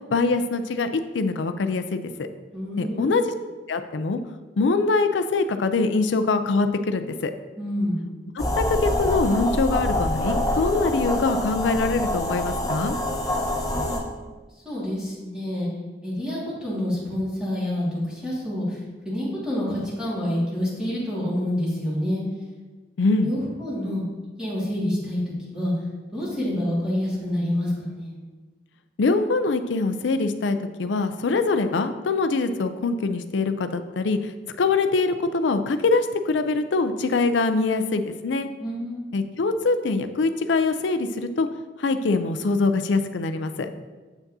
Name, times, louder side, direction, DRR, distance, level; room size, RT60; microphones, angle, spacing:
voice 1, 0.1-2.3 2.8-3.3 3.7-4.2 4.6-7.3 8.4-13.0 23.0-23.3 29.0-34.3 34.6-38.5 39.1-41.5 41.8-43.7, left 3 dB, 90° left, 9 dB, 0.5 m, -23 dB
voice 2, 2.5-3.1 7.6-8.0 13.6-14.3 14.7-15.7 16.0-18.8 19.0-22.2 23.2-24.0 24.4-25.2 25.5-25.7 26.1-28.2 38.3-39.0 43.6-43.8, left 1 dB, 5° right, -8 dB, 2.1 m, -28 dB
sound 1, 8.4-14.0, left 1 dB, 20° left, 1.0 m, -26 dB
8.0 x 5.8 x 2.7 m, 1.3 s
head